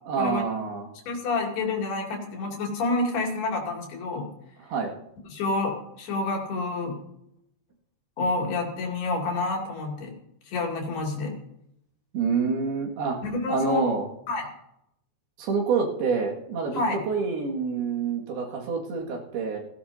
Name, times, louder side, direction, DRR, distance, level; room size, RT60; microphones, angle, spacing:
voice 1, 0.1-0.9 4.6-4.9 12.1-13.2 13.5-14.1 15.4-19.6, right 5 dB, 80° right, 0 dB, 4.0 m, -27 dB
voice 2, 1.1-4.3 5.3-7.0 8.2-10.1 10.5-11.3 13.2-13.8 14.3-14.4 16.7-17.0, left 3 dB, 80° left, 0 dB, 4.7 m, -28 dB
17.0 x 17.0 x 2.7 m, 0.78 s
omnidirectional pair, 4.5 m